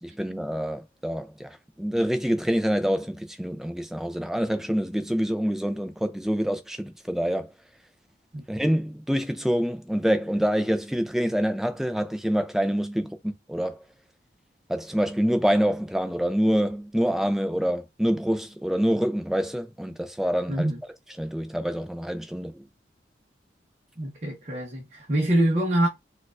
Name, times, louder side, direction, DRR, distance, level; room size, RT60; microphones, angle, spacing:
voice 1, 0.0-7.5 8.5-13.8 14.7-20.7 21.2-22.6, equal, ahead, 0.3 m, -26 dB
voice 2, 20.5-20.8 24.0-25.9, right 1 dB, 40° right, 0.7 m, -24 dB
4.3 x 2.3 x 2.4 m
head